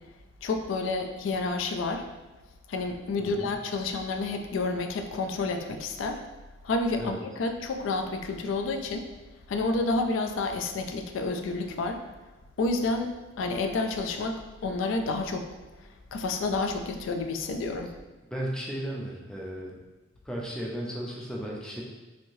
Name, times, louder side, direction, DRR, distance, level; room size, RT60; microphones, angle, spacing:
voice 1, 0.4-2.1 2.7-6.2 6.6-9.1 9.5-12.0 12.6-13.1 13.4-15.5 16.1-17.9, left 3 dB, 70° left, 5 dB, 0.3 m, -29 dB
voice 2, 18.3-19.7 20.3-21.8, right 1 dB, 5° left, -3 dB, 0.4 m, -35 dB
3.1 x 2.7 x 2.6 m, 1.2 s
head